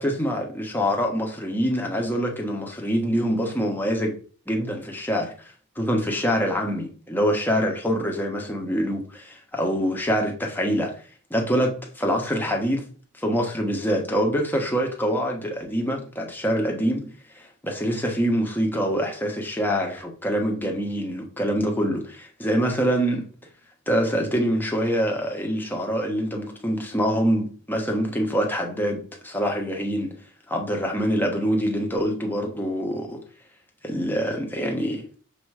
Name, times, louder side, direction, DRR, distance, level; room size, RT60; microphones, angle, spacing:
voice 1, 0.0-4.1 4.5-5.3 5.8-10.9 11.3-12.8 13.2-17.1 17.3-23.2 23.9-30.1 30.5-33.2 33.8-35.1, equal, 10° left, 1.3 m, -25 dB
6.7 x 3.1 x 4.8 m
head